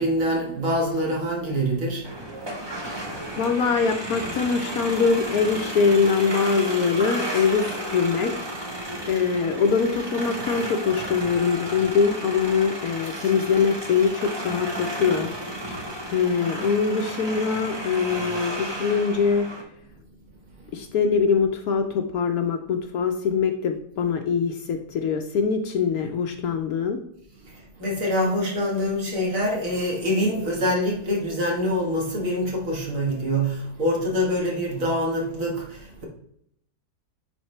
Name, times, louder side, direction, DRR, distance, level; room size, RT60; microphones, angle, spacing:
voice 1, 0.0-3.0 8.9-9.0 20.6-20.8 27.3-36.1, equal, 55° right, 2.0 m, -25 dB
sound 1, 2.0-19.6, right 1 dB, 20° right, 0.8 m, -33 dB
voice 2, 3.4-8.3 9.1-15.3 16.1-19.5 20.7-27.0, left 5 dB, 70° left, 1.1 m, -23 dB
9.5 x 3.6 x 3.2 m
omnidirectional pair, 1.7 m